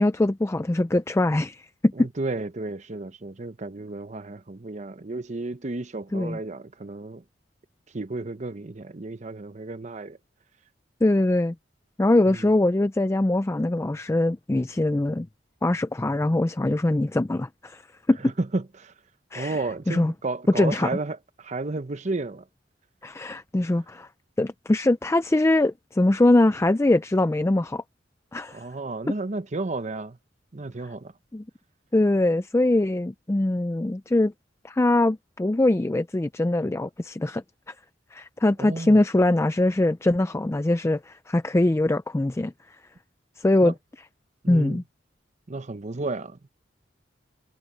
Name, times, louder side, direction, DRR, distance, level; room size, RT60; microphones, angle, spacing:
voice 1, 0.0-2.1 6.1-6.4 11.0-11.5 12.0-15.3 15.6-17.8 18.1-18.3 19.3-19.6 19.9-20.1 20.5-20.9 23.0-24.1 24.4-27.8 28.3-28.6 31.3-31.4 31.9-34.3 34.6-37.4 38.1-42.5 43.4-43.7 44.5-44.8, left 1 dB, 15° left, 0.4 m, -22 dB
voice 2, 2.0-7.2 7.9-10.2 12.3-12.5 18.2-18.9 19.3-22.5 28.5-30.2 30.5-31.1 38.6-39.0 43.6-43.7 44.4-44.8 45.5-46.5, right 2 dB, 40° right, 0.8 m, -32 dB
head